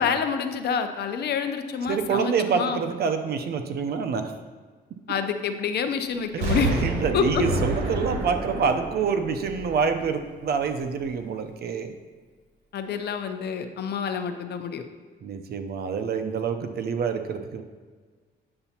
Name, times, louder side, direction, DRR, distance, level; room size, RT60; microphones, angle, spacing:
voice 1, 0.0-2.8 5.1-6.7 7.1-7.4 12.7-14.8, left 6 dB, 65° left, 8 dB, 0.6 m, -27 dB
voice 2, 1.9-4.3 6.3-11.9 15.2-17.6, right 6 dB, 60° right, 7 dB, 0.6 m, -27 dB
Explosion, 6.4-10.3 10.8-10.9, right 2 dB, 80° right, 1.7 m, -29 dB
8.7 x 6.8 x 2.8 m, 1.5 s
cardioid pair, 145°, 19 cm